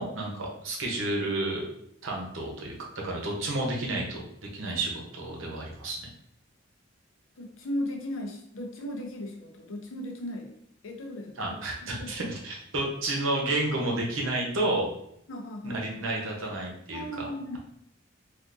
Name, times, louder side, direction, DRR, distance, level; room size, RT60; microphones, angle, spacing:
voice 1, 0.0-1.6 2.0-4.2 4.5-6.1 11.4-14.9 15.6-17.3, right 2 dB, 85° right, -1 dB, 0.8 m, -31 dB
voice 2, 7.4-10.5 10.8-12.1 15.3-15.8 16.9-17.6, left 1 dB, 80° left, 3 dB, 0.6 m, -36 dB
3.5 x 2.5 x 2.5 m, 0.74 s
head